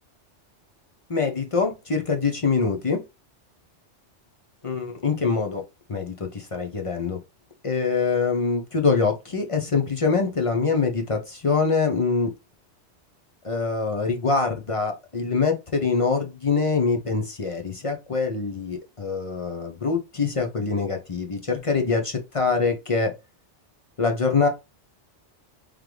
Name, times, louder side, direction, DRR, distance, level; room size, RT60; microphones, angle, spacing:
voice 1, 1.1-3.0 4.6-5.6 5.9-7.2 7.6-12.3 13.4-23.1 24.0-24.5, left 4 dB, 35° left, 0.6 m, -24 dB
3.7 x 3.3 x 3.1 m
omnidirectional pair, 1.2 m